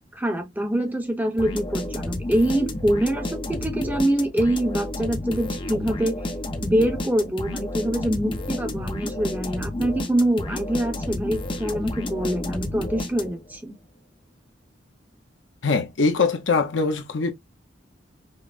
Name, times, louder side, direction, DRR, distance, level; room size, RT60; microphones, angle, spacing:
voice 1, 0.1-6.2 6.6-13.7, right 1 dB, 10° right, 0.8 m, -25 dB
sound 1, 1.4-13.6, left 1 dB, 25° left, 0.7 m, -31 dB
voice 2, 15.6-17.3, left 4 dB, 85° left, 0.8 m, -22 dB
5.3 x 2.1 x 2.4 m
head